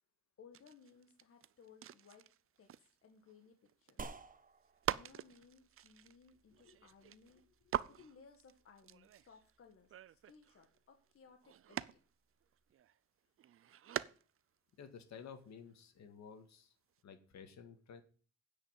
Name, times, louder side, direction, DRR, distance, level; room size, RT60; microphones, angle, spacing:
voice 1, 0.4-2.3 2.6-4.1 4.9-11.9, left 5 dB, 45° left, 4 dB, 1.6 m, -62 dB
sound 1, 0.5-4.2 4.6-12.1 12.4-13.0 13.4-14.6 14.8-14.9 15.1-15.7 17.0-17.1, right 10 dB, 45° right, 0.6 m, -45 dB
sound 2, 4.0-12.7, right 4 dB, 30° right, 1.1 m, -57 dB
voice 2, 14.8-16.8 17.0-18.0, left 6 dB, 65° left, 8 dB, 2.0 m, -53 dB
9.9 x 5.7 x 8.1 m, 0.40 s
cardioid pair, 90°, 30 cm